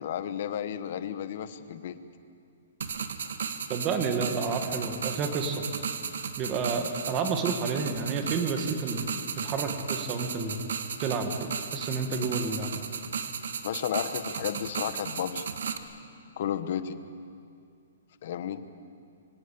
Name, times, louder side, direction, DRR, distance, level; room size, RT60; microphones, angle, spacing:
voice 1, 0.0-2.0 13.6-15.5 16.4-17.0 18.2-18.6, left 9 dB, 40° left, 12 dB, 1.0 m, -33 dB
sound 1, 2.8-15.8, right 6 dB, 70° right, 1.5 m, -35 dB
voice 2, 3.7-5.6 6.4-9.1 9.4-10.6 11.0-12.7, right 5 dB, 20° right, 6 dB, 1.7 m, -30 dB
24.5 x 17.5 x 8.6 m, 2.4 s
hypercardioid pair, 180°, 0 cm